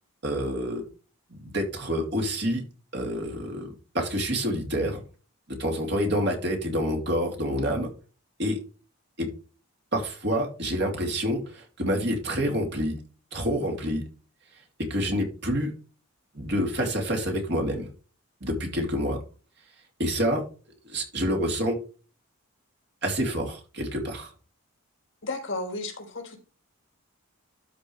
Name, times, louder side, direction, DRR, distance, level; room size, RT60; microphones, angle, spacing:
voice 1, 0.2-0.8 1.3-2.6 2.9-3.7 3.9-5.0 5.5-7.9 8.4-8.6 9.2-9.3 9.9-13.0 13.3-14.0 14.9-15.7 16.3-17.9 18.4-19.2 20.0-20.4 20.8-21.8 23.0-24.3, equal, 50° right, 2 dB, 2.8 m, -27 dB
voice 2, 25.2-26.4, left 2 dB, 55° left, 2 dB, 4.0 m, -33 dB
12.5 x 5.4 x 3.3 m, 0.36 s
head